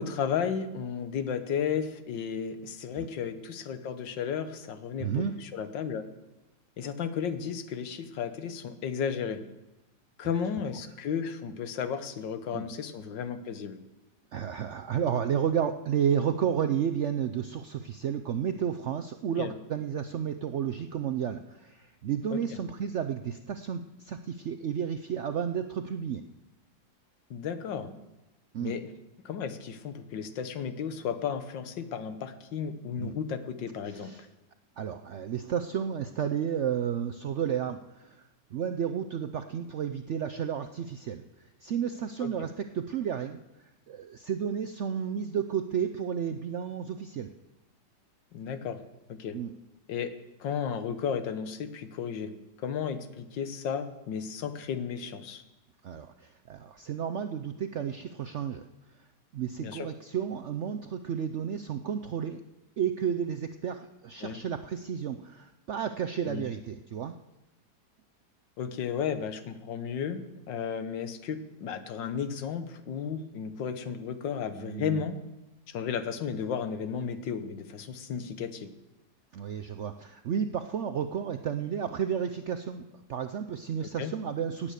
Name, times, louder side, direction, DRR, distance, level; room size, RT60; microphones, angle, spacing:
voice 1, 0.0-6.0 6.8-9.4 10.2-13.8 19.4-19.5 22.3-22.4 27.3-27.9 28.6-28.9 29.2-34.1 42.2-42.3 48.3-48.8 49.1-49.4 49.9-50.1 50.4-52.3 52.6-55.4 59.6-59.9 64.2-64.4 66.3-66.5 68.6-70.2 70.5-75.2 75.7-78.7 84.0-84.1, left 7 dB, 90° left, 10 dB, 1.7 m, -33 dB
voice 2, 5.0-5.4 12.5-12.7 14.3-26.2 28.5-28.8 33.0-33.2 33.9-34.3 34.8-41.2 41.6-43.4 43.9-47.3 49.3-49.5 55.8-58.7 59.3-62.4 62.8-67.2 74.6-75.0 79.3-84.7, right 8 dB, 75° right, 8 dB, 0.6 m, -32 dB
17.0 x 8.9 x 6.7 m, 1.0 s
omnidirectional pair, 1.9 m